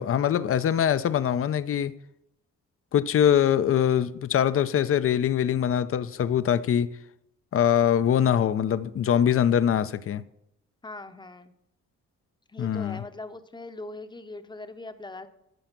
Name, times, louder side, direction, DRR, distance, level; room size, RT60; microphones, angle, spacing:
voice 1, 0.0-1.9 2.9-6.9 7.5-10.2 12.6-13.0, left 9 dB, 45° left, 0.7 m, -23 dB
voice 2, 10.8-11.5 12.5-15.3, left 2 dB, 15° left, 0.9 m, -41 dB
14.5 x 5.0 x 5.9 m
cardioid pair, 90°, 30 cm